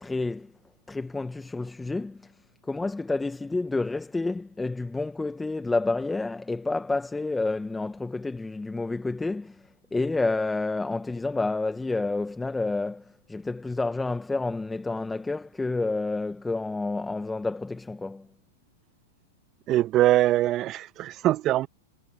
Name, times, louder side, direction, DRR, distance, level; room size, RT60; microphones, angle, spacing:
voice 1, 0.0-0.5 0.9-2.3 2.7-9.6 9.9-18.3, left 3 dB, 10° left, 1.1 m, -29 dB
voice 2, 19.7-21.7, right 14 dB, 35° right, 1.1 m, -22 dB
hypercardioid pair, 110°, 0 cm